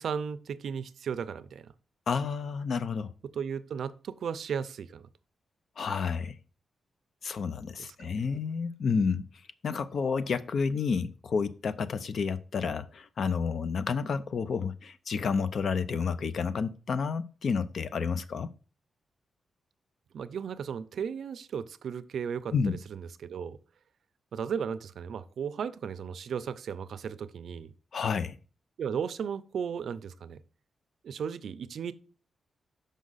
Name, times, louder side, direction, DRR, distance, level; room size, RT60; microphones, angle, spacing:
voice 1, 0.0-1.7 3.2-5.1 7.8-8.1 20.1-23.6 24.3-27.7 28.8-30.4 31.0-31.9, right 7 dB, 75° right, 0.4 m, -35 dB
voice 2, 2.1-3.1 5.8-6.4 7.2-9.2 9.6-18.5 22.5-22.8 27.9-28.4, left 5 dB, 60° left, 0.4 m, -30 dB
6.3 x 5.2 x 3.9 m
wide cardioid pair, 135°, 0 cm